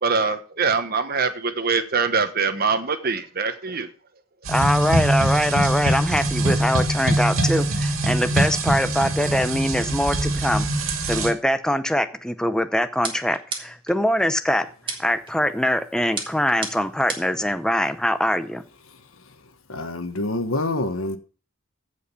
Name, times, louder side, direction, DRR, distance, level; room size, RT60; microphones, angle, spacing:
voice 1, 0.0-3.9, right 5 dB, 45° right, 1.1 m, -23 dB
voice 2, 4.5-10.7 11.1-14.7 15.0-18.6, equal, 5° left, 0.6 m, -23 dB
sound 1, 4.5-11.3, right 1 dB, 85° right, 2.1 m, -23 dB
sound 2, 13.0-14.0 14.9-15.3 16.2-17.4, right 4 dB, 25° right, 2.0 m, -33 dB
voice 3, 19.7-21.2, left 2 dB, 85° left, 1.4 m, -26 dB
15.0 x 5.2 x 5.6 m
head